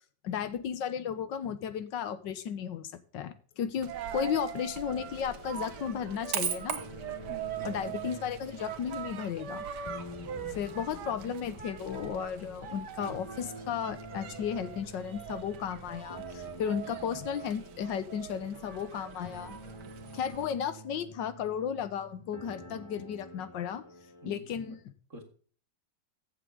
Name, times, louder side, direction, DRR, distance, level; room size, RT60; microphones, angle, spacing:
voice 1, 0.2-6.8 7.6-9.7 10.5-19.6 20.1-23.8 24.2-24.8, left 8 dB, 80° left, 13 dB, 1.6 m, -34 dB
Coin (dropping), 3.8-20.5, right 9 dB, 65° right, 1.6 m, -41 dB
sound 1, 4.9-24.3, left 1 dB, 20° left, 1.3 m, -49 dB
voice 2, 7.3-8.3 24.2-24.8 25.1-25.2, right 3 dB, 40° right, 4 dB, 2.3 m, -47 dB
14.5 x 7.5 x 3.6 m, 0.43 s
omnidirectional pair, 2.0 m